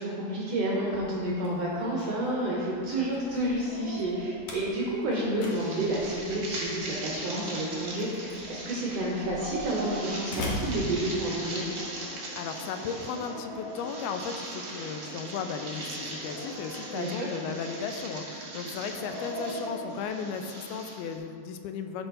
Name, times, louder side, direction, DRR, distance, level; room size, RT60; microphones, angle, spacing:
voice 1, 0.0-11.7 16.9-17.3, right 1 dB, 75° right, -5 dB, 1.4 m, -30 dB
Dog, 0.6-1.3 3.4-4.7 6.8-7.6 9.1-10.6 11.5-14.7 16.0-17.4 18.7-20.0, right 1 dB, 20° left, 1.1 m, -42 dB
Slam, 0.8-11.7, left 1 dB, 65° left, 1.7 m, -42 dB
sound 1, 5.5-21.1, right 1 dB, 50° right, 1.3 m, -40 dB
voice 2, 12.4-22.1, left 6 dB, 80° left, 6 dB, 2.4 m, -35 dB
11.5 x 5.6 x 4.0 m, 2.3 s
omnidirectional pair, 4.5 m